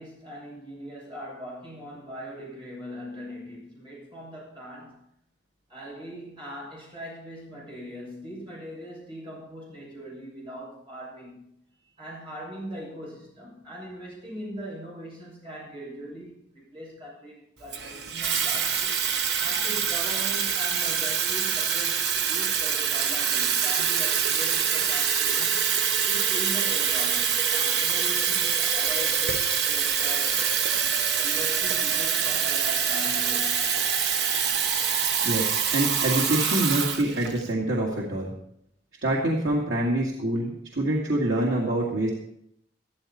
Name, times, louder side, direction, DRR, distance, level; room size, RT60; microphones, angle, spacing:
voice 1, 0.0-5.1 5.7-11.5 11.8-18.9 19.4-30.4 31.2-33.6, equal, 25° right, -5 dB, 6.5 m, -40 dB
Water tap faucet / Fill (with liquid), 17.7-37.5, right 7 dB, 60° right, 1.0 m, -25 dB
voice 2, 35.2-38.3 39.0-42.1, right 1 dB, 85° right, -3 dB, 2.2 m, -26 dB
14.0 x 13.5 x 4.3 m, 0.73 s
head